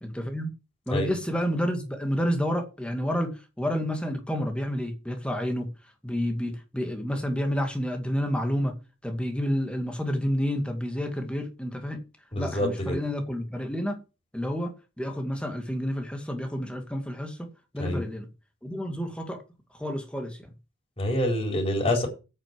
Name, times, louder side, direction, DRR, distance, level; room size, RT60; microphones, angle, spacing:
voice 1, 0.0-0.5 0.9-5.7 6.0-8.7 9.0-12.0 12.4-14.0 14.3-17.5 17.7-18.3 18.6-19.4 19.7-20.4, equal, 5° left, 2.1 m, -29 dB
voice 2, 12.3-13.0 17.8-18.0 21.0-22.1, left 1 dB, 25° left, 4.3 m, -26 dB
8.6 x 6.5 x 7.6 m
head